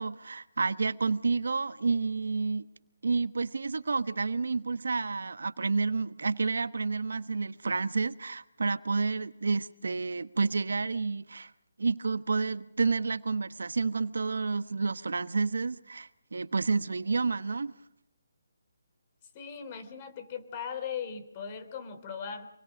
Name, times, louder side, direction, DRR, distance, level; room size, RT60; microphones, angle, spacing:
voice 1, 0.0-2.7 3.0-11.5 11.8-17.7, right 4 dB, 75° right, 1.2 m, -30 dB
voice 2, 19.3-22.5, left 7 dB, 30° left, 3.2 m, -38 dB
27.5 x 21.5 x 5.1 m
hypercardioid pair, 160°, 0 cm